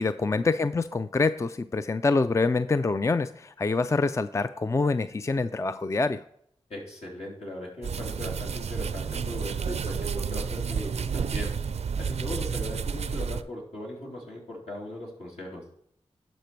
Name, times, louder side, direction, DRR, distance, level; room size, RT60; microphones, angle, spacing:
voice 1, 0.0-6.2, left 3 dB, 25° left, 12 dB, 0.4 m, -26 dB
voice 2, 6.7-11.5 12.0-15.6, left 1 dB, 75° left, -3 dB, 3.4 m, -39 dB
sound 1, 7.8-13.4, right 6 dB, 75° right, 0.5 m, -31 dB
12.0 x 5.1 x 4.6 m, 0.70 s
cardioid pair, 50°, 11 cm